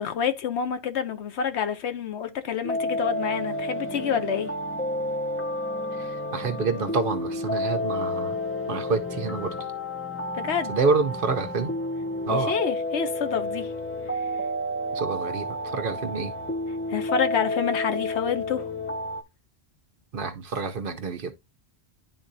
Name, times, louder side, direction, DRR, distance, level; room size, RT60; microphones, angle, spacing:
voice 1, 0.0-4.5 10.3-10.8 12.3-13.7 16.9-18.6, left 7 dB, 80° left, 1.1 m, -28 dB
sound 1, 2.6-19.2, left 1 dB, 15° left, 0.6 m, -30 dB
voice 2, 5.9-8.4 8.7-9.5 10.7-11.7 12.3-12.5 14.9-16.3 20.1-21.3, right 4 dB, 55° right, 0.9 m, -28 dB
11.0 x 3.7 x 2.6 m
omnidirectional pair, 1.1 m